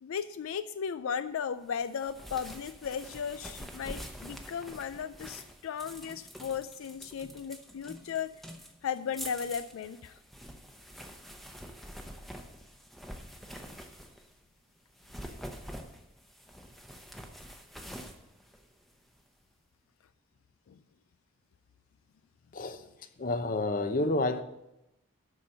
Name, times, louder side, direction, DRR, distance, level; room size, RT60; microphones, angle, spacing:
voice 1, 0.0-8.3 8.8-10.2 20.7-20.8, left 7 dB, 75° left, 0.3 m, -36 dB
sound 1, 1.7-14.4 14.9-19.2, equal, ahead, 0.8 m, -46 dB
voice 2, 23.2-24.4, left 2 dB, 40° left, 0.7 m, -29 dB
12.0 x 4.4 x 7.6 m
head